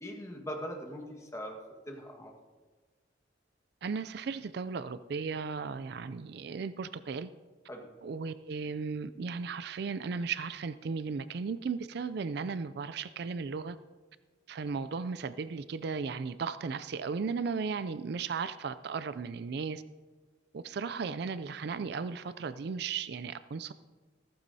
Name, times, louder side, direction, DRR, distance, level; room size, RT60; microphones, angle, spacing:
voice 1, 0.0-1.6 1.9-2.3 7.7-7.9, equal, 15° left, 1 dB, 1.5 m, -41 dB
voice 2, 3.8-7.3 8.0-13.8 14.5-19.8 20.5-23.7, right 5 dB, 60° right, 14 dB, 0.4 m, -36 dB
15.0 x 14.5 x 2.8 m, 1.3 s
head